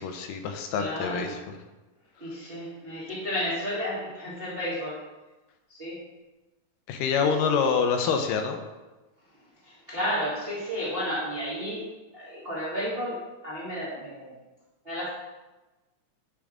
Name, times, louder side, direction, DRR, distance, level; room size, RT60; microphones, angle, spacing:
voice 1, 0.0-1.4 6.9-8.6, left 6 dB, 80° left, 5 dB, 2.3 m, -26 dB
voice 2, 0.8-1.4 2.2-4.9 5.7-6.0 7.2-7.6 9.6-11.8 12.1-14.3 14.8-15.1, equal, 40° right, -8 dB, 0.7 m, -32 dB
8.6 x 3.6 x 5.0 m, 1.1 s
omnidirectional pair, 3.9 m